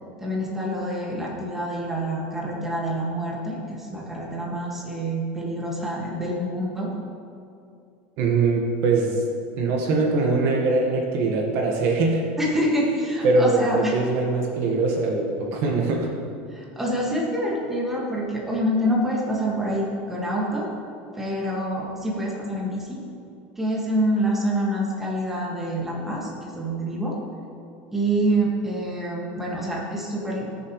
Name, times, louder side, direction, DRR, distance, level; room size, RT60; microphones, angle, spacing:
voice 1, 0.2-6.9 12.4-14.0 16.5-20.7 21.1-23.0 23.6-27.2 27.9-30.5, right 1 dB, 5° right, -4 dB, 1.9 m, -26 dB
voice 2, 8.2-9.2 9.6-12.2 13.2-16.1, right 3 dB, 50° right, 0 dB, 1.5 m, -22 dB
19.5 x 7.0 x 3.2 m, 2.5 s
supercardioid pair, 150°, 5 cm